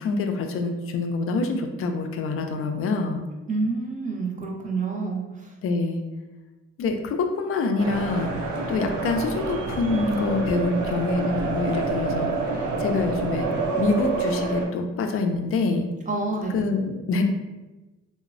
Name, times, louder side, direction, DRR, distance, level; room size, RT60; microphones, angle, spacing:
voice 1, 0.0-3.2 5.6-6.0 6.8-13.5 13.8-15.9 16.5-17.2, left 3 dB, 50° left, 5 dB, 0.4 m, -26 dB
voice 2, 3.5-5.5 16.1-16.6, right 3 dB, 25° right, -1 dB, 0.5 m, -28 dB
sound 1, 7.8-14.7, right 3 dB, 75° right, 0.6 m, -28 dB
2.9 x 2.0 x 2.5 m, 1.1 s
cardioid pair, 90°, 30 cm